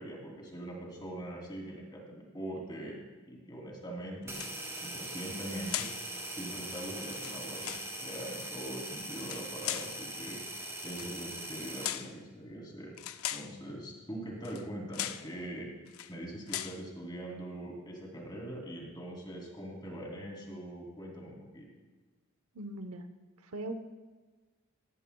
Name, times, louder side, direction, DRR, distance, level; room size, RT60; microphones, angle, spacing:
voice 1, 0.0-3.0 3.3-4.4 4.8-5.9 6.3-10.4 10.8-13.0 13.3-15.7 16.1-21.7, right 1 dB, 20° left, -2 dB, 2.9 m, -42 dB
sound 1, 4.3-4.8 5.7-6.0 7.0-7.9 9.1-10.0 10.9-11.1 11.8-12.2 13.0-13.5 14.4-14.7 14.9-15.3 15.9-16.1 16.5-16.8, left 12 dB, 70° left, 0.5 m, -38 dB
sound 2, 4.3-12.0, right 1 dB, 15° right, 1.4 m, -41 dB
voice 2, 22.5-23.1 23.4-23.7, right 2 dB, 80° right, 7 dB, 0.8 m, -40 dB
18.5 x 13.5 x 2.3 m, 1.3 s
head